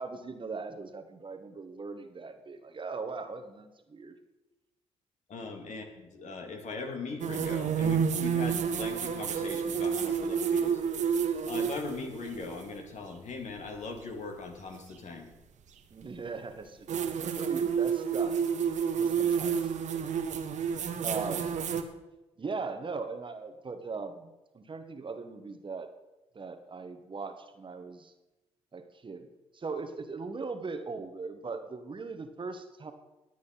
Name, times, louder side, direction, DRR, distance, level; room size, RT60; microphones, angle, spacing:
voice 1, 0.0-4.1 15.9-18.4 18.6-20.2 20.5-20.7 21.0-21.6 22.4-25.9 26.3-28.1 28.7-29.3 29.5-32.9, right 4 dB, 35° right, 7 dB, 1.5 m, -40 dB
voice 2, 5.3-10.8 11.5-15.3, left 4 dB, 55° left, 3 dB, 2.4 m, -40 dB
sound 1, 7.2-12.7 14.7-14.8 16.9-21.8, right 7 dB, 55° right, 1.3 m, -30 dB
19.0 x 8.3 x 4.1 m, 1.0 s
hypercardioid pair, 50°, 15 cm